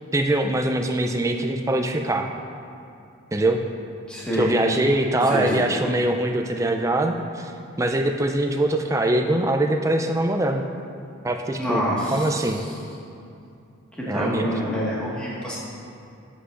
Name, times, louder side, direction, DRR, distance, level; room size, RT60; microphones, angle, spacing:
voice 1, 0.1-2.3 3.3-3.6 4.3-7.5 7.8-10.6 11.2-12.6 14.0-14.6, right 1 dB, 15° right, 4 dB, 0.3 m, -23 dB
voice 2, 4.1-4.5 5.3-5.7 11.6-12.2 14.0-15.6, equal, 5° left, -8 dB, 1.5 m, -26 dB
11.0 x 8.0 x 2.5 m, 2.6 s
head